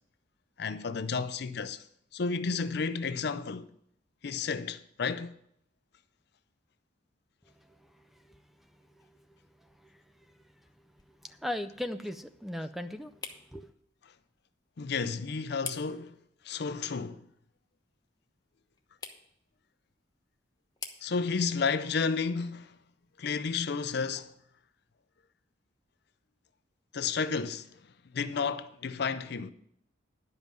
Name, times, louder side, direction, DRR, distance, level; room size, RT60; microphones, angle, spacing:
voice 1, 0.6-1.8 2.1-3.7 4.2-5.3 14.8-16.2 16.4-17.2 21.0-22.7 23.2-24.3 26.9-27.8 28.1-29.5, left 5 dB, 60° left, 0.5 m, -32 dB
voice 2, 7.5-13.7, left 1 dB, ahead, 0.4 m, -41 dB
Plastic Light Switch, 9.7-24.4, left 5 dB, 20° left, 0.9 m, -51 dB
11.0 x 5.4 x 7.5 m
head